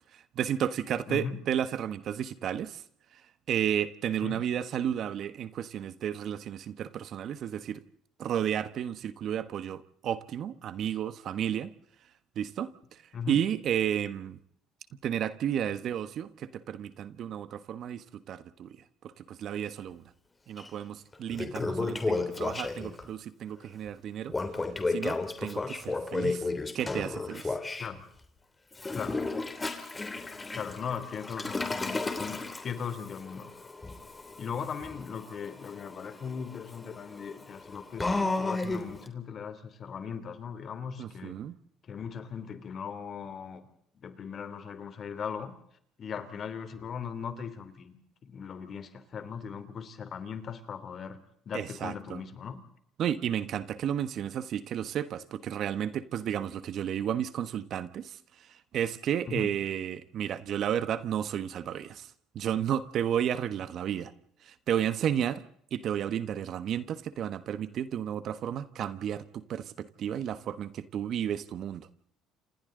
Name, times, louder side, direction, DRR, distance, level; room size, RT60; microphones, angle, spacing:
voice 1, 0.3-2.8 3.5-7.8 8.2-11.7 12.3-12.7 13.3-14.4 15.0-18.8 19.2-20.0 20.5-24.3 24.9-26.4 26.7-27.6 41.0-41.6 51.5-52.2 53.0-58.2 58.7-62.1 62.3-64.1 64.5-65.4 65.7-71.9, right 9 dB, 60° right, 13 dB, 1.4 m, -32 dB
voice 2, 1.1-1.4 4.2-4.4 13.1-13.4 21.6-21.9 27.8-28.0 28.9-29.2 30.5-33.5 34.4-41.4 41.8-43.6 43.9-45.5 46.0-48.0 48.2-51.2 51.4-52.6 59.3-59.5, left 6 dB, 45° left, 10 dB, 3.2 m, -38 dB
Toilet flush, 20.6-20.7 21.1-23.0 24.3-27.9 28.7-39.1, left 3 dB, 20° left, 3.2 m, -33 dB
29.5 x 27.5 x 3.9 m, 0.67 s
supercardioid pair, 85°, 0 cm